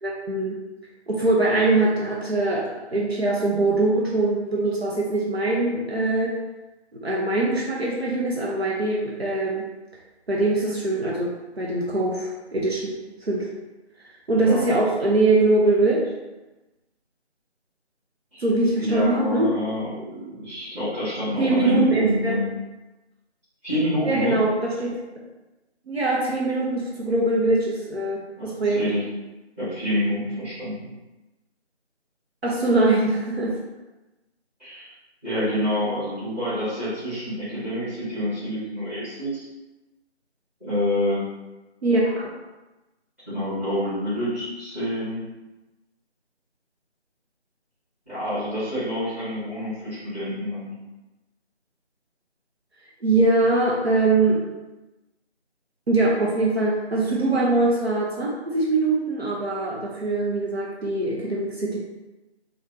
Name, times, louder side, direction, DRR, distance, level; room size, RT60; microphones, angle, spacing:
voice 1, 0.0-0.6 1.1-6.3 7.0-9.6 10.3-12.9 13.2-13.5 14.3-16.1 18.4-19.5 21.4-22.4 24.0-24.9 25.9-28.8 32.4-33.5 41.8-42.1 53.0-54.4 55.9-61.8, right 2 dB, 65° right, -4 dB, 0.7 m, -22 dB
voice 2, 18.8-22.5 23.6-24.4 28.4-29.0 29.6-30.9 34.6-34.9 35.2-39.4 40.6-41.3 43.3-45.2 48.1-50.7, left 1 dB, 10° right, -16 dB, 1.4 m, -27 dB
3.4 x 2.3 x 2.6 m, 1.1 s
figure-of-eight pair, 160°, 34 cm